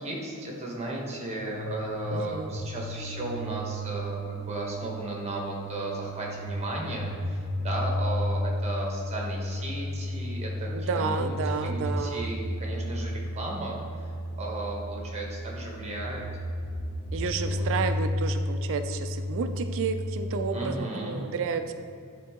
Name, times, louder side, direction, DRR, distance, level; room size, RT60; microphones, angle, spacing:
voice 1, 0.0-11.3 11.6-14.1 14.4-16.2 17.2-17.7 20.5-21.2, right 2 dB, 30° right, -2 dB, 1.2 m, -35 dB
sound 1, 1.3-20.5, left 1 dB, 25° left, 0.9 m, -33 dB
voice 2, 2.1-2.5 10.7-12.4 17.1-21.7, right 5 dB, 60° right, 8 dB, 0.4 m, -31 dB
10.5 x 3.6 x 3.6 m, 2.4 s
head